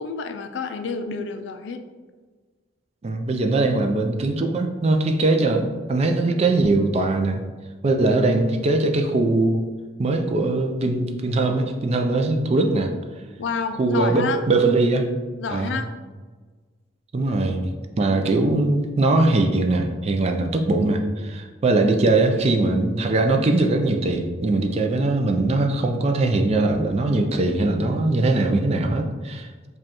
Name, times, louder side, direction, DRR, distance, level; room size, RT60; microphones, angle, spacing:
voice 1, 0.0-1.8 13.4-14.4 15.4-15.9, left 5 dB, 65° left, 7 dB, 0.3 m, -29 dB
voice 2, 3.0-7.4 7.8-9.7 10.0-12.9 13.8-15.1 15.5-15.8 17.1-29.5, right 2 dB, 35° right, 4 dB, 0.3 m, -21 dB
5.0 x 2.3 x 2.9 m, 1.4 s
head